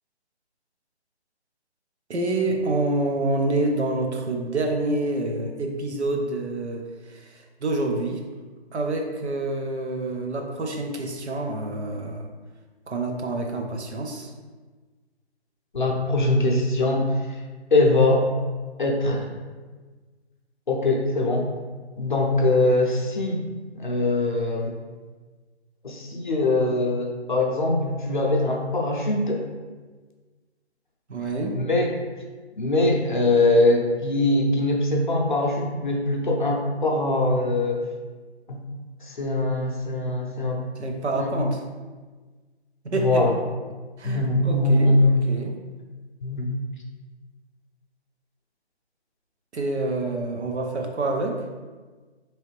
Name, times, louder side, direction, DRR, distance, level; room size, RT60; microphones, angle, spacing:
voice 1, 2.1-8.2 8.7-12.3 12.9-14.3 31.1-31.6 40.8-41.6 42.8-43.2 44.0-45.5 49.5-51.4, right 2 dB, 80° right, 2 dB, 0.8 m, -27 dB
voice 2, 15.7-17.4 17.7-18.3 18.8-19.3 20.7-21.5 22.0-23.4 23.7-24.7 25.8-29.5 31.5-31.9 32.6-37.9 38.5-38.6 39.0-40.6 41.2-41.3 43.0-43.3 44.0-45.2 46.2-46.5, left 2 dB, 45° left, 0 dB, 0.6 m, -22 dB
4.0 x 3.2 x 3.1 m, 1.4 s
hypercardioid pair, 175°, 33 cm